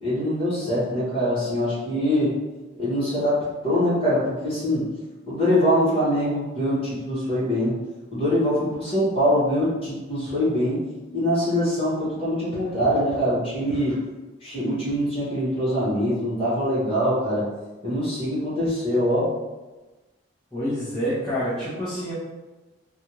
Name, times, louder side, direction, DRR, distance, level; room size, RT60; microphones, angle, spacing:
voice 1, 0.0-2.3 2.8-4.8 5.3-7.7 8.1-10.8 11.1-14.0 14.4-17.5 17.8-19.3, equal, 30° left, -9 dB, 1.2 m, -23 dB
voice 2, 20.5-22.1, equal, 5° left, -14 dB, 0.9 m, -27 dB
3.4 x 2.4 x 2.9 m, 1.1 s
head